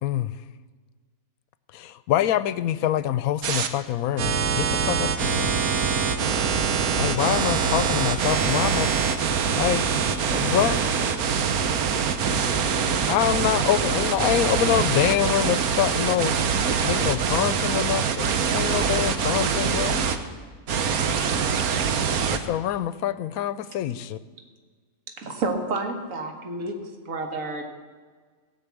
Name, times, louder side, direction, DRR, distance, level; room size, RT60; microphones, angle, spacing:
voice 1, 0.0-0.3 1.7-5.5 7.0-8.9 9.6-10.8 13.1-16.4 16.8-20.1 22.3-24.2, left 11 dB, 80° left, 16 dB, 1.0 m, -25 dB
sound 1, 3.4-3.7 4.2-20.2 20.7-22.4, right 6 dB, 90° right, 1.3 m, -24 dB
voice 2, 10.3-11.4 12.0-14.3, left 1 dB, 15° left, 2 dB, 2.3 m, -39 dB
voice 3, 25.2-26.8 27.1-27.6, right 3 dB, 65° right, 4 dB, 1.9 m, -29 dB
17.5 x 6.0 x 8.4 m, 1.5 s
omnidirectional pair, 1.5 m